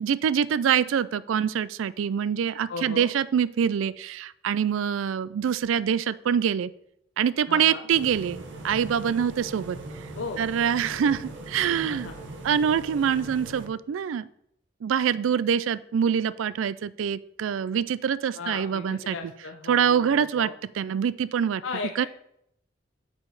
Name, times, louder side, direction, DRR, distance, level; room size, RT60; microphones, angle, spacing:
voice 1, 0.0-6.7 7.2-9.8 10.4-11.2 11.5-12.1 12.4-14.2 14.8-19.2 19.7-20.5 20.8-21.6 22.0-22.1, right 8 dB, 90° right, 18 dB, 0.3 m, -25 dB
voice 2, 2.7-3.1 7.5-7.9 10.2-10.4 11.9-12.2 18.3-20.5 21.6-22.1, left 4 dB, 80° left, 4 dB, 0.5 m, -36 dB
sound 1, 7.9-13.7, right 2 dB, 70° right, 1.0 m, -40 dB
8.6 x 4.8 x 4.0 m, 0.74 s
head